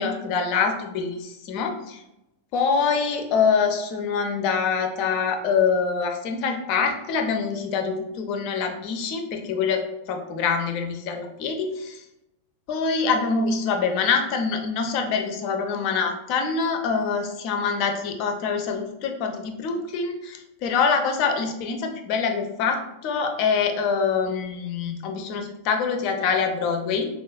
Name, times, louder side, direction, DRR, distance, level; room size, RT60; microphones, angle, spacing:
voice 1, 0.0-2.0 2.5-12.0 12.7-27.1, left 5 dB, 45° left, 6 dB, 0.4 m, -25 dB
3.9 x 2.3 x 2.2 m, 0.89 s
figure-of-eight pair, 90°, 0 cm